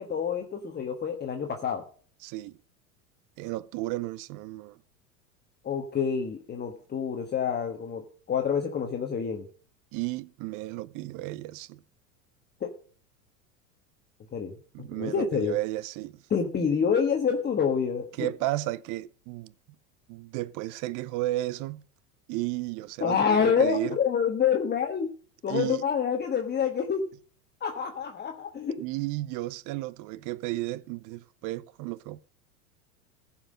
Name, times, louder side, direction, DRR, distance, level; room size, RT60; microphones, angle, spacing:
voice 1, 0.0-1.8 5.6-9.4 12.6-12.7 14.3-14.5 14.8-15.6 16.3-18.3 23.0-25.1 25.4-27.0 27.6-28.8, left 7 dB, 20° left, 1.4 m, -27 dB
voice 2, 2.2-2.6 3.4-4.8 9.9-11.8 14.7-16.2 18.2-19.5 20.1-21.8 22.3-24.0 25.5-25.8 28.8-32.2, right 17 dB, 45° right, 0.7 m, -33 dB
14.5 x 5.8 x 6.4 m
hypercardioid pair, 100°, 44 cm